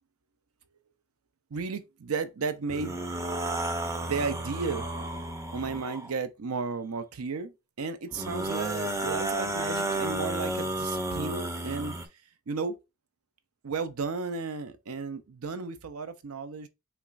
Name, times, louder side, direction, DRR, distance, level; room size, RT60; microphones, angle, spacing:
voice 1, 1.5-3.0 4.0-4.9 5.5-12.0 12.5-12.8 13.6-16.7, right 4 dB, 75° right, 0.6 m, -34 dB
sound 1, 2.7-6.1 8.1-12.1, right 1 dB, 15° right, 0.5 m, -32 dB
5.8 x 3.1 x 2.5 m
head